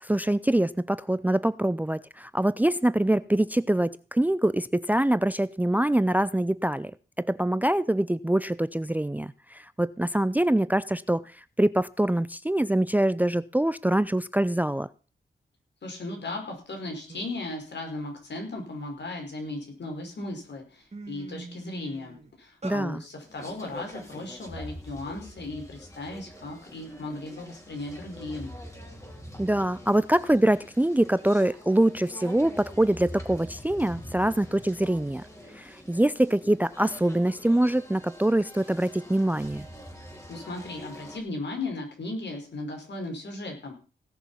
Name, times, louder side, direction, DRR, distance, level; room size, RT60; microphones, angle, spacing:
voice 1, 0.0-6.9 7.2-11.3 11.6-14.9 22.6-23.0 29.4-35.2 35.6-39.7, right 1 dB, 10° right, 19 dB, 0.5 m, -24 dB
voice 2, 15.8-28.5 40.3-43.7, left 2 dB, 65° left, 2 dB, 5.4 m, -36 dB
sound 1, 16.7-16.8 17.1-17.5 18.0-19.5 20.1-20.3 20.6-22.8, right 3 dB, 35° right, 2.9 m, -44 dB
sound 2, 23.2-41.2, equal, 15° left, 4.2 m, -45 dB
17.5 x 6.7 x 5.7 m, 0.36 s
cardioid pair, 45°, 20 cm